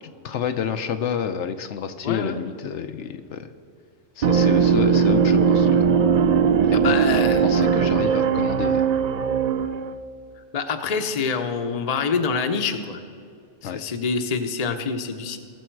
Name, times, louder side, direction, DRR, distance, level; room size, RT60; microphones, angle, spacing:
voice 1, 0.0-3.5 4.2-5.9 6.6-8.9 13.6-13.8, left 7 dB, 75° left, 8 dB, 0.9 m, -30 dB
voice 2, 2.0-2.4 6.7-7.5 10.5-13.0 13.6-15.4, left 5 dB, 40° left, 7 dB, 0.8 m, -26 dB
sound 1, 4.2-9.9, right 6 dB, 60° right, 0.4 m, -19 dB
19.0 x 7.1 x 4.6 m, 2.4 s
omnidirectional pair, 1.3 m